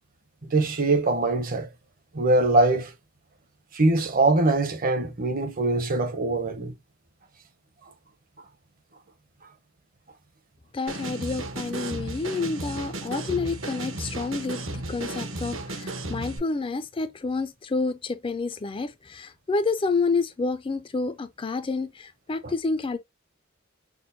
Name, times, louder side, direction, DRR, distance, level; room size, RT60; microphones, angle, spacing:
voice 1, 0.5-1.7 2.1-2.9 3.7-6.7, right 2 dB, 45° right, 0.8 m, -22 dB
voice 2, 10.7-23.0, left 4 dB, 25° left, 0.4 m, -29 dB
sound 1, 10.9-16.4, right 2 dB, 70° right, 1.0 m, -34 dB
6.1 x 2.2 x 2.6 m
head